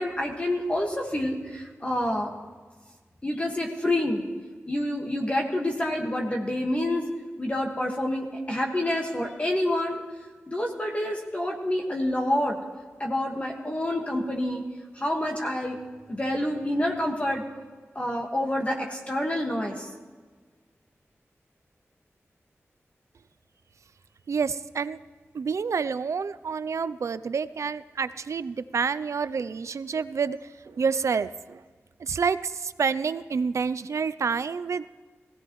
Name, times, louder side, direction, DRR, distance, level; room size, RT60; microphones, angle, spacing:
voice 1, 0.0-2.3 3.2-4.2 4.7-7.1 7.4-10.0 10.5-12.6 13.0-14.7 15.0-15.8 16.1-17.4 18.0-19.9, left 1 dB, 25° left, 0 dB, 1.6 m, -28 dB
voice 2, 24.3-25.0 25.3-30.4 30.7-31.6 32.0-34.9, right 5 dB, 80° right, 15 dB, 0.4 m, -28 dB
20.0 x 16.5 x 3.1 m, 1.4 s
wide cardioid pair, 100°, 5 cm